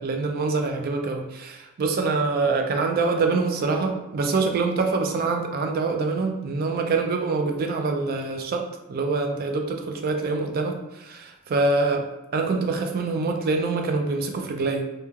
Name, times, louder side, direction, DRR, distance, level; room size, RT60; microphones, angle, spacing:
voice 1, 0.0-14.8, right 3 dB, 45° right, 4 dB, 0.3 m, -25 dB
3.0 x 2.2 x 2.3 m, 0.97 s
head